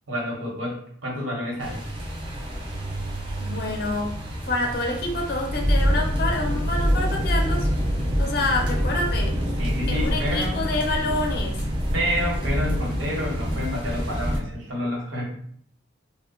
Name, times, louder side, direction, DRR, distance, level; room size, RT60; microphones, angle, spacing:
voice 1, 0.1-1.8 9.6-10.6 11.9-15.3, equal, 80° right, -2 dB, 0.9 m, -29 dB
sound 1, 1.6-14.4, equal, 25° right, 0.4 m, -26 dB
voice 2, 3.4-4.1 4.5-7.7 8.2-9.3 9.9-11.5, left 2 dB, 50° left, 1 dB, 0.5 m, -27 dB
2.1 x 2.1 x 3.6 m, 0.62 s
head